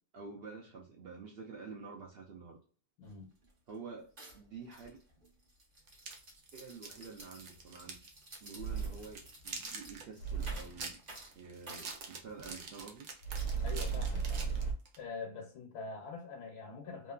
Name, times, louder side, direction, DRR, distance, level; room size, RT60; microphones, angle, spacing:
voice 1, 0.1-2.6 3.7-5.0 6.5-8.1 8.4-11.0 11.3-13.1, right 5 dB, 80° right, 0 dB, 0.5 m, -48 dB
voice 2, 3.0-3.3 13.6-14.5 15.0-17.1, left 4 dB, 90° left, 0 dB, 1.3 m, -44 dB
sound 1, 3.0-3.1 3.4-3.8 4.2-12.7 13.4-14.0, right 1 dB, 35° right, 0.9 m, -54 dB
sound 2, 5.9-8.1 8.4-8.5 8.9-15.0, right 4 dB, 65° right, 1.0 m, -46 dB
sound 3, 7.6-7.7 8.6-9.2 10.2-10.8 13.2-14.7, right 5 dB, 65° left, 0.8 m, -35 dB
2.9 x 2.4 x 2.2 m, 0.40 s
omnidirectional pair, 1.6 m